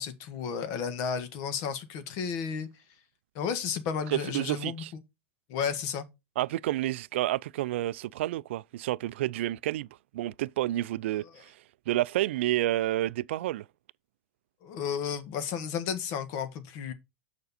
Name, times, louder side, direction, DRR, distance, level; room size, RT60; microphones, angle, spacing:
voice 1, 0.0-2.7 3.3-4.8 5.5-6.0 14.6-16.9, left 7 dB, 45° left, 1.5 m, -33 dB
voice 2, 4.1-4.9 6.4-9.9 10.1-11.5 11.9-13.6, right 15 dB, 65° right, 0.4 m, -29 dB
6.8 x 5.1 x 4.2 m
hypercardioid pair, 135°, 7 cm